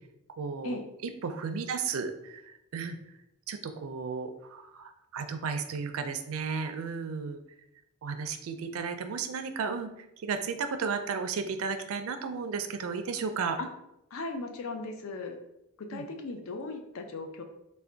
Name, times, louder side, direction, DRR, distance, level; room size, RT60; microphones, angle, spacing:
voice 1, 0.4-0.8 1.2-2.4 2.7-3.0 3.5-7.4 8.0-9.9 10.2-13.6 15.9-16.0, right 5 dB, 65° right, 8 dB, 0.4 m, -34 dB
voice 2, 14.1-15.4 15.9-17.4, left 3 dB, 65° left, 5 dB, 0.5 m, -37 dB
3.3 x 2.2 x 3.8 m, 0.84 s
head